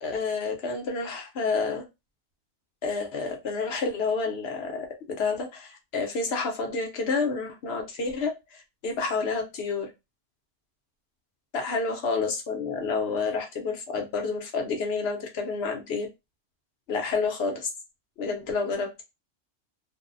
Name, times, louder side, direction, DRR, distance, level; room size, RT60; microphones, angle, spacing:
voice 1, 0.0-1.8 2.8-9.9 11.5-16.1 16.9-17.7 18.2-19.0, left 4 dB, 60° left, 3 dB, 0.8 m, -29 dB
2.6 x 2.0 x 2.5 m, 0.23 s
omnidirectional pair, 1.3 m